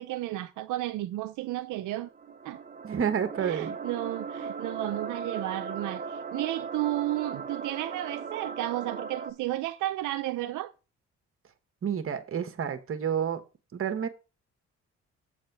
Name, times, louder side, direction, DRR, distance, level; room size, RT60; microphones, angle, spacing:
voice 1, 0.0-2.1 2.4-2.6 3.4-10.7, right 15 dB, 80° right, 0.6 m, -32 dB
sound 1, 1.9-9.3, right 5 dB, 25° right, 0.9 m, -38 dB
voice 2, 2.8-3.7 11.8-13.4 13.7-14.1, right 8 dB, 45° right, 1.3 m, -29 dB
8.0 x 4.2 x 6.6 m
cardioid pair, 90°, 30 cm